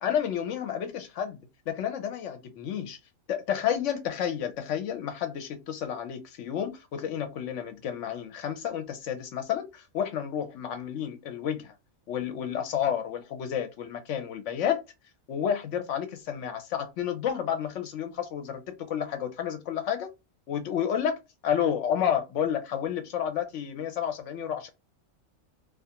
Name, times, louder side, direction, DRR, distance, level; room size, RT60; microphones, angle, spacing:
voice 1, 0.0-1.4 1.7-3.0 3.3-11.7 12.1-14.8 15.3-20.1 20.5-21.2 21.4-24.7, left 9 dB, 70° left, 0.8 m, -30 dB
2.3 x 2.3 x 2.7 m
omnidirectional pair, 1.4 m